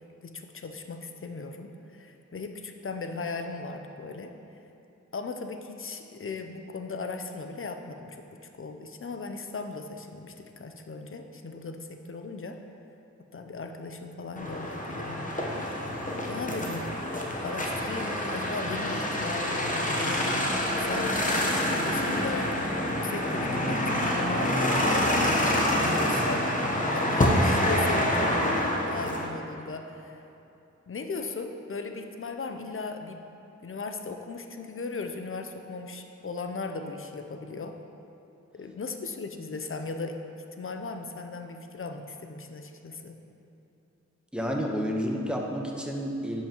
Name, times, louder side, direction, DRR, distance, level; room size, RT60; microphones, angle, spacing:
voice 1, 0.2-4.3 5.1-8.2 8.6-12.6 13.3-15.7 16.3-16.9 17.4-20.3 20.8-22.5 23.0-28.5 28.9-30.2 30.9-33.2 33.6-37.8 38.5-40.2 40.6-43.2, left 3 dB, 45° left, 5 dB, 0.6 m, -37 dB
sound 1, 14.4-29.3, left 1 dB, 25° left, 0.9 m, -27 dB
voice 2, 44.3-46.4, equal, 5° right, -1 dB, 0.9 m, -30 dB
10.5 x 5.6 x 3.0 m, 2.8 s
wide cardioid pair, 65°, 29 cm